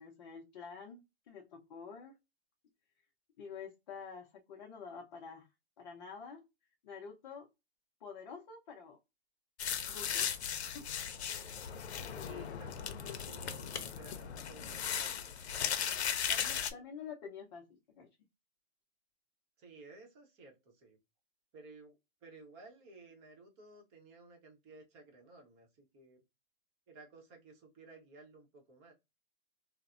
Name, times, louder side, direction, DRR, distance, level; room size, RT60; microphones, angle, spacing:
voice 1, 0.0-2.2 3.4-5.5 5.8-6.4 6.8-7.5 8.0-9.0 9.8-10.4 10.7-10.9 12.1-12.6 16.3-17.7 17.9-18.1, left 6 dB, 40° left, 0.6 m, -48 dB
sound 1, 9.6-16.7, left 8 dB, 85° left, 0.6 m, -37 dB
voice 2, 12.2-15.3 19.6-21.0 21.5-21.9 22.2-26.2 26.9-28.9, right 2 dB, 25° right, 0.8 m, -56 dB
3.1 x 2.1 x 2.5 m
hypercardioid pair, 150°, 32 cm